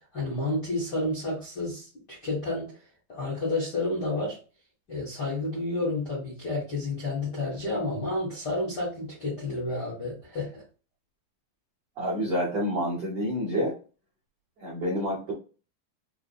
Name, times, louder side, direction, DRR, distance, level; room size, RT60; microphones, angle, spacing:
voice 1, 0.0-2.7 3.1-4.4 4.9-10.6, left 2 dB, 60° left, -6 dB, 1.0 m, -30 dB
voice 2, 12.0-13.7 14.6-15.3, equal, 70° right, -5 dB, 1.5 m, -28 dB
5.9 x 2.1 x 2.3 m, 0.37 s
omnidirectional pair, 4.3 m